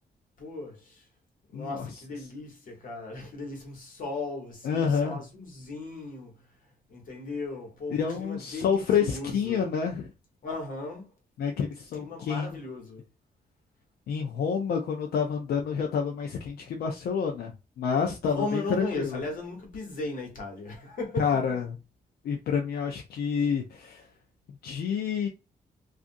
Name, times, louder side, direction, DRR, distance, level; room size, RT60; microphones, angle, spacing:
voice 1, 0.4-1.0 1.5-6.4 6.9-9.6 10.4-11.1 11.9-13.0 18.2-21.3, left 3 dB, 60° left, 1.3 m, -36 dB
voice 2, 1.5-1.9 4.6-5.2 7.9-10.1 11.4-12.5 14.1-17.5 17.8-19.2 21.2-21.8 22.2-24.0 24.6-25.3, left 6 dB, 85° left, 0.5 m, -28 dB
2.5 x 2.4 x 2.6 m
wide cardioid pair, 140°, 16 cm